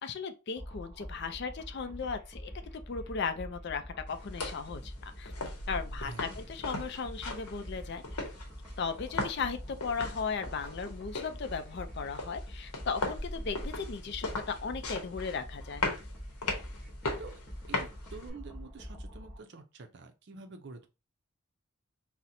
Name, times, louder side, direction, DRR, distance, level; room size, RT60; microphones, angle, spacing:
voice 1, 0.0-5.3 5.7-8.0 8.8-15.9, left 5 dB, 50° left, 0.4 m, -36 dB
sound 1, 0.6-19.4, equal, 5° left, 0.9 m, -45 dB
sound 2, 4.1-18.3, left 2 dB, 90° left, 0.8 m, -39 dB
voice 2, 6.0-6.5 17.2-17.4 17.7-20.9, right 4 dB, 50° right, 0.5 m, -47 dB
4.1 x 2.1 x 2.6 m
head